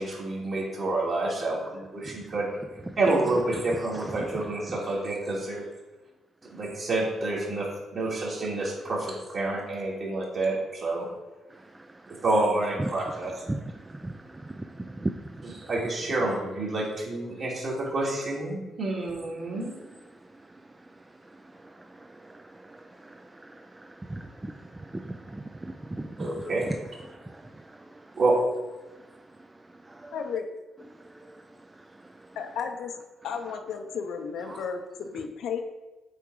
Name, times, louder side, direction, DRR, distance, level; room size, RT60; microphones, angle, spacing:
voice 1, 0.0-2.5 3.0-5.7 6.5-11.1 12.2-13.3 15.6-19.8 26.2-26.6 28.1-28.3 34.5-34.6, right 2 dB, 50° right, -4 dB, 2.3 m, -28 dB
voice 2, 3.7-4.5 6.4-6.6 11.5-12.2 12.8-15.7 19.5-19.6 20.1-28.2 28.8-30.2 30.9-32.4 34.5-34.6, right 2 dB, 15° right, 7 dB, 0.3 m, -40 dB
voice 3, 30.1-30.5 32.4-32.9 33.2-35.6, left 6 dB, 75° left, 5 dB, 0.7 m, -33 dB
8.0 x 3.5 x 4.7 m, 1.1 s
cardioid pair, 90°, 0 cm